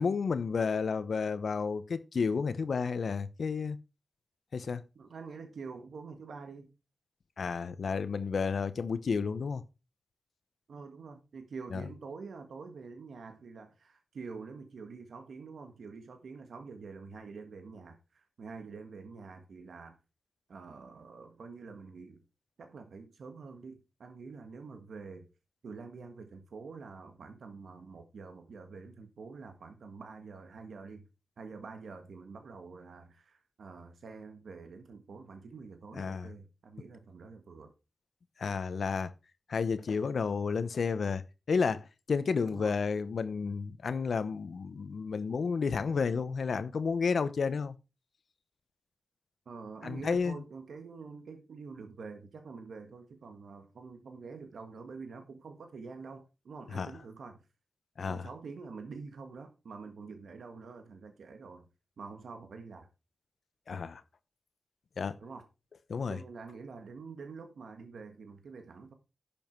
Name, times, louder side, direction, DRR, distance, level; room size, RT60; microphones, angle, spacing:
voice 1, 0.0-3.8 4.5-4.8 7.4-9.6 11.7-11.8 36.0-36.3 38.4-39.1 39.5-41.2 41.5-47.8 49.8-50.4 56.7-56.9 58.0-58.3 63.7-64.0 65.0-65.2 65.9-66.2, left 5 dB, 65° left, 0.8 m, -31 dB
voice 2, 4.9-6.7 10.7-20.0 20.5-22.2 22.6-25.3 25.6-31.1 31.4-37.7 42.4-42.8 49.4-57.4 58.1-61.7 62.0-62.9 65.2-65.5 66.1-68.9, right 4 dB, 90° right, 1.5 m, -46 dB
11.0 x 7.1 x 4.5 m
wide cardioid pair, 140°, 0 cm